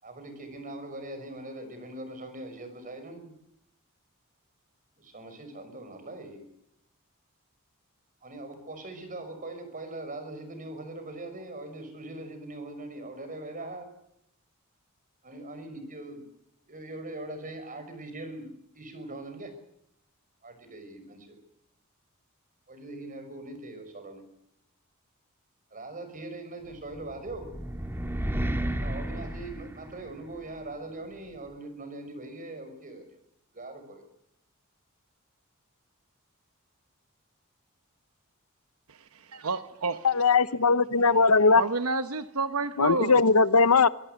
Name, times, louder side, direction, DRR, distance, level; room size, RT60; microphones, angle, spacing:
voice 1, 0.0-3.3 5.0-6.4 8.2-13.9 15.2-16.2 16.7-19.5 20.4-21.4 22.7-24.2 25.7-27.5 28.8-33.2 33.5-34.0, right 2 dB, 40° right, 8 dB, 5.8 m, -41 dB
sound 1, 26.9-30.3, right 1 dB, 10° right, 1.8 m, -32 dB
voice 2, 38.9-40.1 41.5-43.2, right 4 dB, 75° right, 10 dB, 0.9 m, -30 dB
voice 3, 40.0-41.6 42.8-43.9, left 4 dB, 85° left, 15 dB, 0.9 m, -20 dB
25.0 x 17.0 x 8.1 m, 0.76 s
head